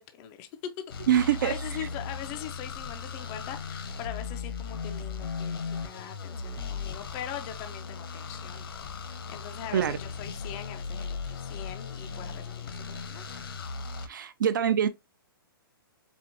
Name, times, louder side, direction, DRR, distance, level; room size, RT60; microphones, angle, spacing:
voice 1, 0.0-13.2, left 10 dB, 15° left, 0.3 m, -42 dB
sound 1, 0.9-14.1, left 5 dB, 80° left, 0.9 m, -37 dB
voice 2, 1.1-1.9 9.7-10.0 14.0-14.9, right 9 dB, 55° right, 0.4 m, -25 dB
4.4 x 3.4 x 2.5 m
hypercardioid pair, 170°, 12 cm